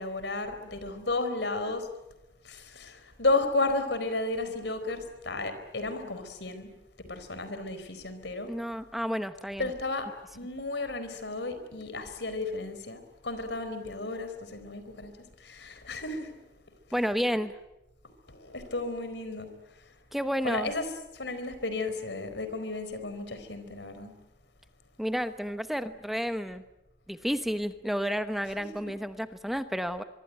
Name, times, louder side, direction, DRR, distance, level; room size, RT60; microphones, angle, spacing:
voice 1, 0.0-1.9 2.4-6.7 7.1-8.5 9.6-10.1 10.3-15.1 15.4-16.4 17.3-17.4 18.3-19.5 20.4-20.8 21.1-24.1, left 2 dB, 80° left, 9 dB, 4.3 m, -33 dB
voice 2, 8.5-9.7 16.9-17.5 20.1-20.7 25.0-26.6 27.1-30.0, equal, ahead, 9 dB, 1.0 m, -31 dB
24.0 x 24.0 x 9.2 m, 0.96 s
head